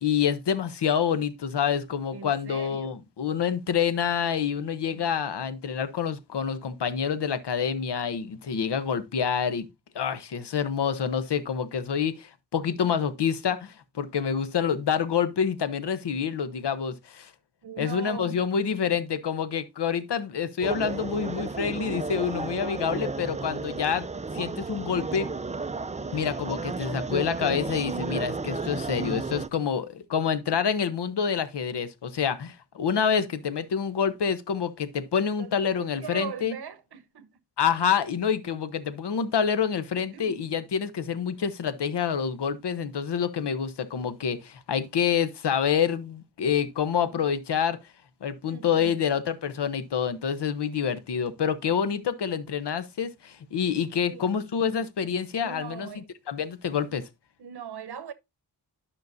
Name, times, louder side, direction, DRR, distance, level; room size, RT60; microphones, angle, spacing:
voice 1, 0.0-9.7 9.9-17.3 17.8-24.1 24.3-25.3 26.1-36.5 37.6-47.8 48.2-55.9 56.3-57.0, left 7 dB, 75° left, 0.9 m, -27 dB
voice 2, 2.1-2.9 4.9-5.1 17.6-18.4 35.4-37.3 40.1-40.4 48.4-49.0 54.0-54.5 55.3-56.1 57.4-58.1, right 7 dB, 70° right, 0.9 m, -40 dB
sound 1, 20.6-29.5, right 3 dB, 20° right, 0.5 m, -33 dB
12.0 x 5.7 x 2.6 m
wide cardioid pair, 75°, 41 cm